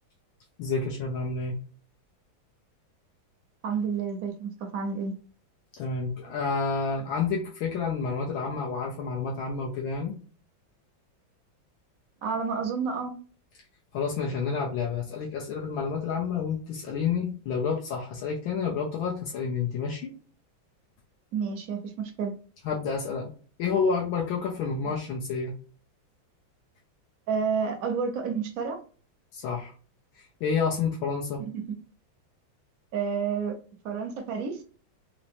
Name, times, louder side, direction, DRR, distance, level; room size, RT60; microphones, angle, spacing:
voice 1, 0.6-1.5 5.7-10.1 13.9-20.1 22.6-23.3 23.6-25.5 29.3-29.7 30.2-31.4, left 5 dB, 80° left, -2 dB, 1.5 m, -29 dB
voice 2, 3.6-5.1 12.2-13.1 21.3-22.3 24.8-24.9 27.3-28.8 31.4-31.8 32.9-33.6 33.8-34.6, right 6 dB, 70° right, 3 dB, 0.8 m, -30 dB
4.3 x 2.1 x 2.6 m, 0.40 s
omnidirectional pair, 2.2 m